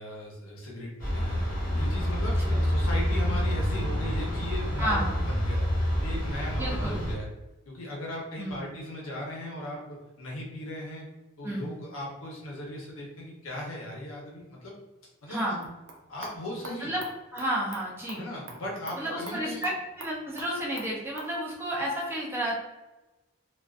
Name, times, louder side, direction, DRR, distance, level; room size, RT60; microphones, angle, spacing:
voice 1, 0.0-1.4 1.7-5.7 6.0-7.3 7.7-11.0 11.4-14.7 15.2-15.6 16.1-16.9 18.2-19.6, left 1 dB, 75° left, -3 dB, 0.8 m, -38 dB
sound 1, 1.0-7.1, equal, 45° left, 0.7 m, -27 dB
voice 2, 4.8-5.2 6.6-7.0 8.4-8.7 11.4-11.8 15.3-15.7 16.8-17.1 17.3-18.2 19.0-22.5, right 1 dB, 10° right, -5 dB, 0.5 m, -31 dB
sound 2, 15.6-21.4, right 3 dB, 60° right, 0.5 m, -46 dB
2.4 x 2.3 x 2.4 m, 1.1 s
head